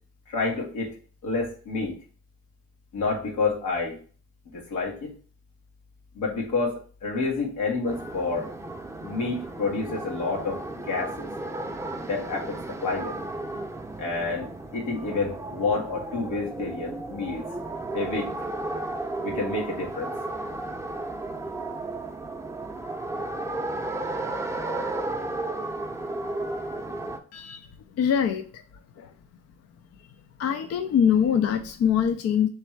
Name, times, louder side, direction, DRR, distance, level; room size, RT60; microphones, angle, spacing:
voice 1, 0.3-0.9 1.2-1.9 2.9-4.0 4.4-5.1 6.1-8.5 9.0-11.3 12.1-13.1 14.0-14.5 14.7-17.5 17.9-18.3 19.2-20.1, left 3 dB, 90° left, -2 dB, 1.6 m, -29 dB
sound 1, 7.9-27.2, right 2 dB, 10° right, 0.6 m, -34 dB
voice 2, 27.3-28.6 29.0-29.1 30.0-30.1 30.4-32.5, left 8 dB, 55° left, 7 dB, 0.5 m, -24 dB
3.3 x 3.2 x 4.5 m, 0.41 s
cardioid pair, 90°, 30 cm